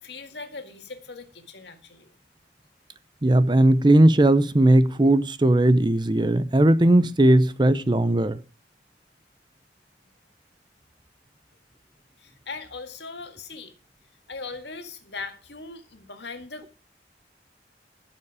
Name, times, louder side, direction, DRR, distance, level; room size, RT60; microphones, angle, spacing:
voice 1, 0.0-2.1 12.2-13.7 14.3-16.7, left 4 dB, 80° left, 2.0 m, -39 dB
voice 2, 3.2-8.4, right 1 dB, 25° right, 0.6 m, -18 dB
15.0 x 7.2 x 4.9 m
head